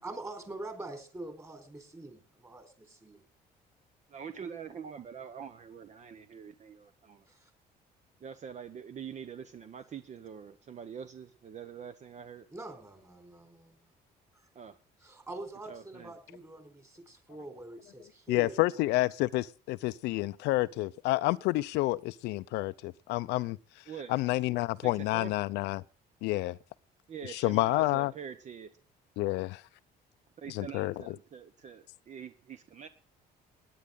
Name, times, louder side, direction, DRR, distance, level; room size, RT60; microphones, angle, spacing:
voice 1, 0.0-3.3 7.2-7.5 12.5-13.9 14.3-14.5 15.0-18.8, right 2 dB, 15° right, 4.4 m, -45 dB
voice 2, 4.1-7.2 8.2-12.5 14.5-14.8 15.7-16.1 23.9-24.1 24.8-25.3 27.1-28.7 30.4-32.9, right 7 dB, 45° right, 1.1 m, -44 dB
voice 3, 18.3-23.6 24.1-25.8 26.2-26.6 27.3-28.1 29.2-29.6 30.5-31.1, left 19 dB, 90° left, 0.6 m, -29 dB
19.0 x 10.0 x 3.9 m
cardioid pair, 110°, 17 cm